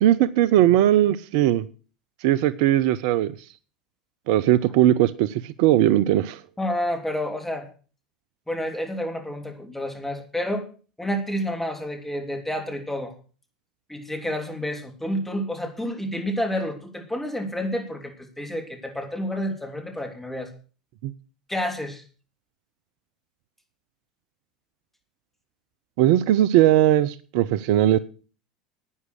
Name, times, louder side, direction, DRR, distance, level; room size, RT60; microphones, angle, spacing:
voice 1, 0.0-1.7 2.2-3.3 4.3-6.4 21.0-21.1 26.0-28.0, right 13 dB, 55° right, 17 dB, 0.6 m, -19 dB
voice 2, 6.6-7.7 8.5-10.7 11.0-13.1 13.9-20.5 21.5-22.0, equal, 5° left, 3 dB, 3.2 m, -29 dB
11.0 x 9.5 x 6.4 m, 0.38 s
figure-of-eight pair, 80°, 4 cm